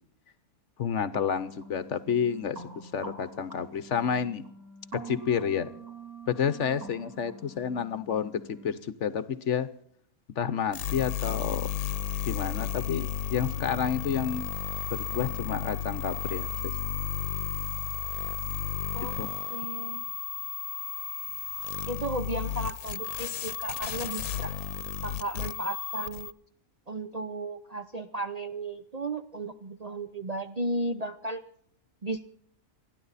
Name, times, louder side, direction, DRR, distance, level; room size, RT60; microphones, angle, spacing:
voice 1, 0.8-4.4 4.9-5.7 6.3-9.7 10.4-11.7 12.3-14.4 14.9-16.7 19.1-19.3, left 7 dB, 60° left, 15 dB, 1.1 m, -30 dB
sound 1, 1.1-8.7, right 3 dB, 80° right, 3.8 m, -46 dB
sound 2, 10.7-26.3, left 9 dB, 80° left, 1.2 m, -33 dB
voice 2, 19.5-20.0 21.9-24.5 25.0-26.3 26.9-31.4 32.0-32.2, right 2 dB, 40° right, 5 dB, 0.6 m, -34 dB
28.5 x 11.0 x 4.1 m, 0.66 s
omnidirectional pair, 1.5 m